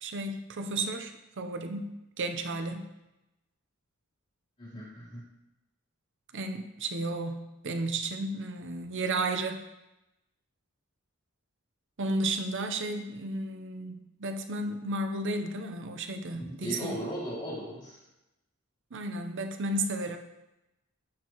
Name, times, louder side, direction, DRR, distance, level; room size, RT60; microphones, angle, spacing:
voice 1, 0.0-2.9 6.3-9.6 12.0-13.9 14.2-17.0 18.9-20.2, right 2 dB, 60° right, 6 dB, 0.7 m, -33 dB
voice 2, 4.6-5.2 16.4-18.0, equal, 35° left, -11 dB, 2.9 m, -37 dB
12.0 x 4.5 x 3.0 m, 0.95 s
head